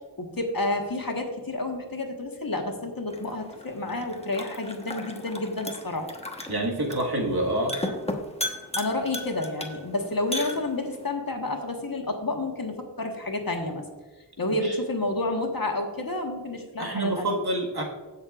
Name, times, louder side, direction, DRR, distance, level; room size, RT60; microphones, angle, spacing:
voice 1, 0.2-6.1 8.8-13.8 14.4-17.3, left 2 dB, 55° left, 3 dB, 1.5 m, -30 dB
sound 1, 3.1-11.1, left 1 dB, 15° left, 1.2 m, -36 dB
voice 2, 6.5-7.8 14.6-14.8 16.8-17.8, right 1 dB, 65° right, -1 dB, 1.8 m, -27 dB
18.0 x 6.5 x 2.5 m, 1.3 s
wide cardioid pair, 45°, 41 cm